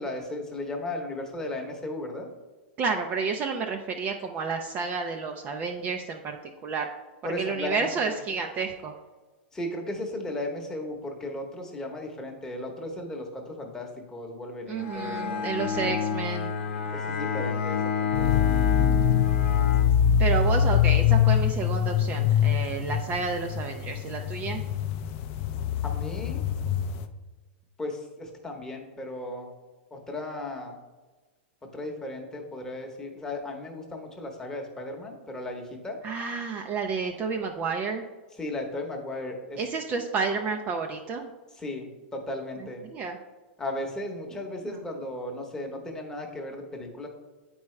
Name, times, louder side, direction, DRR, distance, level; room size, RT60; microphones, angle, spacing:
voice 1, 0.0-2.3 7.2-8.2 9.5-16.0 16.9-18.5 25.8-26.5 27.8-29.5 29.9-30.8 31.7-36.0 38.4-39.6 41.6-42.8 43.6-47.1, left 1 dB, 10° left, 1 dB, 1.0 m, -36 dB
voice 2, 2.8-6.4 6.6-6.9 7.4-9.0 14.7-16.5 20.2-24.6 36.0-38.0 39.6-41.3 42.8-43.2 44.6-44.8, right 5 dB, 25° right, 4 dB, 0.4 m, -30 dB
Bowed string instrument, 14.8-20.6, left 6 dB, 80° left, 0.8 m, -30 dB
sound 1, 18.1-27.1, left 9 dB, 40° left, 0.4 m, -24 dB
8.5 x 4.7 x 3.2 m, 1.3 s
supercardioid pair, 145°, 6 cm